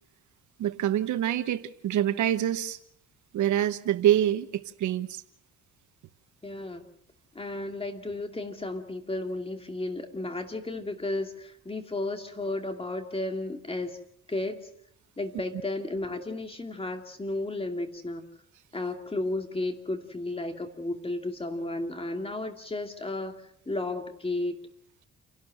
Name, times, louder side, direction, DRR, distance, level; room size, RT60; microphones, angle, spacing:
voice 1, 0.6-2.8 3.3-5.2, right 11 dB, 75° right, 12 dB, 1.1 m, -26 dB
voice 2, 6.4-6.9 7.3-14.0 14.3-14.7 15.2-18.3 18.7-24.6, left 2 dB, 20° left, 5 dB, 2.6 m, -33 dB
28.5 x 12.0 x 7.8 m, 0.71 s
cardioid pair, 90°, 30 cm